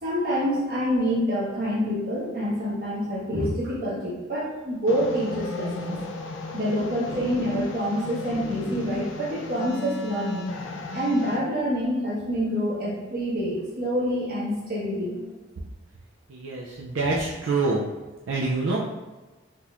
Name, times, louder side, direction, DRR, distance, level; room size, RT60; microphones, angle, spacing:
voice 1, 0.0-6.0 6.5-10.5 10.9-15.2, equal, 50° right, -7 dB, 1.2 m, -27 dB
sound 1, 4.9-11.4, left 3 dB, 85° left, 0.5 m, -36 dB
voice 2, 16.3-17.8 18.3-18.8, right 3 dB, 90° right, -3 dB, 0.4 m, -26 dB
3.7 x 2.9 x 2.5 m, 1.2 s
head